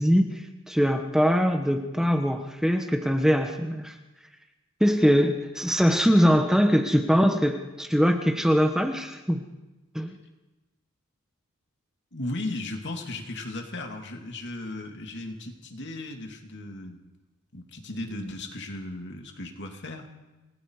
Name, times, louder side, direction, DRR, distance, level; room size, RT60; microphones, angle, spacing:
voice 1, 0.0-4.0 4.8-9.4 9.9-10.1, equal, ahead, 4 dB, 1.2 m, -22 dB
voice 2, 12.1-17.0 17.5-20.1, left 2 dB, 55° left, 3 dB, 2.9 m, -36 dB
29.5 x 20.0 x 5.0 m, 1.1 s
head